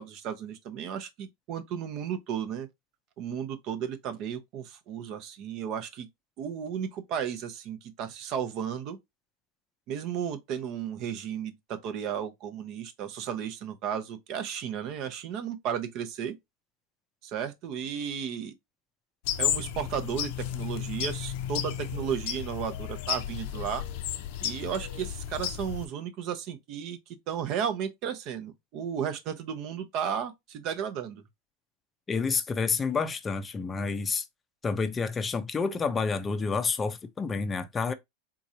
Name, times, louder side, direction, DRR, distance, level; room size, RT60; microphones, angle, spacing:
voice 1, 0.0-2.7 3.2-6.1 6.4-9.0 9.9-16.4 17.2-18.5 19.4-23.8 24.4-27.0 27.3-31.2, right 8 dB, 50° right, 0.8 m, -34 dB
sound 1, 19.3-25.9, left 10 dB, 65° left, 0.5 m, -33 dB
voice 2, 32.1-34.3 34.6-37.9, left 4 dB, 20° left, 0.5 m, -29 dB
3.7 x 2.9 x 2.7 m
supercardioid pair, 125°, 0 cm